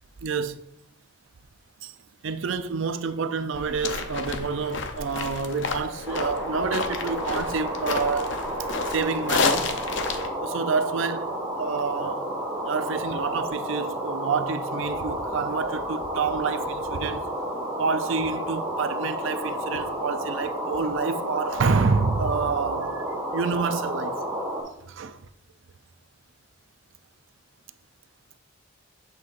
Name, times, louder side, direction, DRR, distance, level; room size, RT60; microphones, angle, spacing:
voice 1, 0.2-0.6 1.8-1.9 2.2-8.4 8.9-9.7 10.4-12.3 12.6-17.2 17.8-23.0 23.3-24.2 24.9-25.1, right 5 dB, 65° right, 0.4 m, -28 dB
sound 1, 3.5-10.3, left 4 dB, 60° left, 0.6 m, -30 dB
sound 2, 6.1-24.6, right 1 dB, 20° right, 1.3 m, -31 dB
7.3 x 6.4 x 2.5 m
head